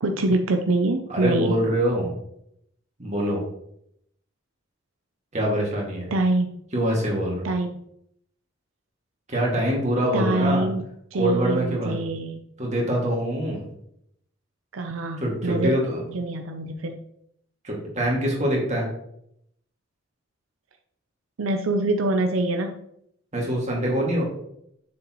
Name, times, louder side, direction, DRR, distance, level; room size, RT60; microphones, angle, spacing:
voice 1, 0.0-1.6 6.1-6.5 7.4-7.8 10.1-10.8 11.1-12.4 14.7-15.8 16.1-17.0 21.4-22.8, right 2 dB, 85° right, 4 dB, 0.6 m, -24 dB
voice 2, 1.1-2.2 3.0-3.4 5.3-6.1 6.7-7.5 9.3-10.7 11.2-12.0 12.6-13.7 15.2-16.0 17.6-18.9 23.3-24.2, equal, 35° right, -2 dB, 2.2 m, -24 dB
7.0 x 6.4 x 3.0 m, 0.74 s
head